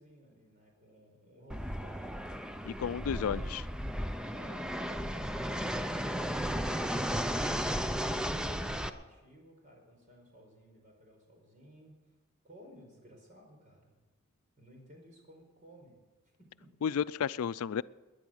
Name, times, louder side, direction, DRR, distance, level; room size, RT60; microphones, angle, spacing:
voice 1, 0.0-3.4 4.3-12.2 12.4-13.9 14.6-16.7, equal, 35° right, 1 dB, 4.7 m, -57 dB
Fixed-wing aircraft airplane, 1.5-8.9, equal, 5° right, 0.5 m, -34 dB
voice 2, 2.7-3.6 16.8-17.8, left 7 dB, 90° left, 18 dB, 0.4 m, -32 dB
19.5 x 10.5 x 6.4 m, 1.2 s
head